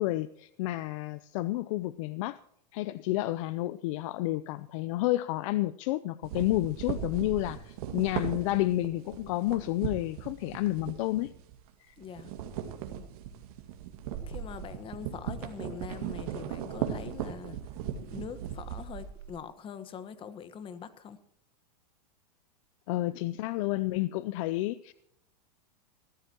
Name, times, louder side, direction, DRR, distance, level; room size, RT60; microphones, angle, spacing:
voice 1, 0.0-2.4 2.7-11.3 11.8-12.0 22.9-24.9, left 17 dB, 50° left, 0.6 m, -30 dB
sound 1, 6.2-11.7 12.0-19.4, right 9 dB, 60° right, 2.1 m, -38 dB
voice 2, 12.0-12.3 14.3-17.6 18.0-21.2, left 7 dB, 25° left, 1.3 m, -43 dB
22.0 x 14.0 x 3.0 m
hypercardioid pair, 130°, 21 cm